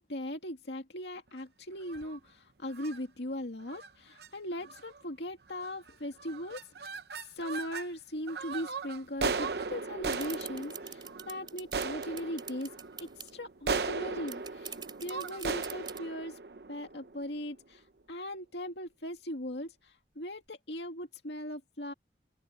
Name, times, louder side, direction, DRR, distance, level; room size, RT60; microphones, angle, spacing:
voice 1, 0.0-6.9 7.2-16.4 16.7-21.9, left 1 dB, 80° left, 2.3 m, -39 dB
sound 1, 1.8-2.2 2.7-3.0 3.7-3.9 4.2-4.3 4.6-5.0 5.6-5.9 6.2-7.9 8.3-17.5, right 4 dB, 70° right, 0.9 m, -37 dB
sound 2, 10.1-13.3 13.8-13.9 14.1-16.0, right 8 dB, 25° right, 3.1 m, -44 dB
open air
head